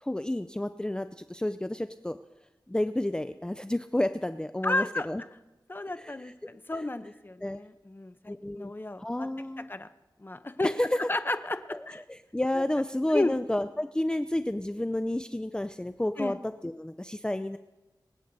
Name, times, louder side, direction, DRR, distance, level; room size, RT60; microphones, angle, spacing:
voice 1, 0.0-2.2 2.7-5.2 6.0-6.1 7.4-7.6 8.3-8.7 9.0-9.7 10.6-10.9 11.7-11.8 12.1-16.4 16.6-17.6, left 1 dB, 10° left, 10 dB, 0.4 m, -30 dB
voice 2, 4.6-5.1 5.7-9.3 9.7-9.9 10.2-10.7 11.1-12.0 12.5-12.6 13.1-13.3 16.2-16.4, left 2 dB, 25° left, 11 dB, 0.8 m, -32 dB
24.5 x 8.3 x 4.1 m, 1.0 s
wide cardioid pair, 70°, 8 cm